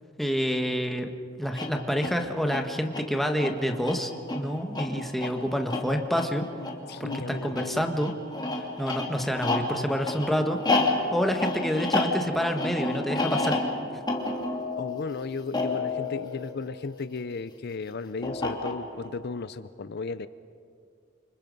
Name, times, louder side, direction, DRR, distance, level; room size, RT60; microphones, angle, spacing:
voice 1, 0.2-1.1 1.4-6.4 7.0-8.1 8.8-10.6 11.1-13.6, equal, ahead, 4 dB, 1.5 m, -28 dB
sound 1, 1.4-17.2 18.2-19.1, left 2 dB, 25° left, 2.8 m, -31 dB
voice 2, 6.9-7.8 14.8-20.3, left 4 dB, 55° left, 14 dB, 0.6 m, -35 dB
29.5 x 26.0 x 5.4 m, 2.3 s
head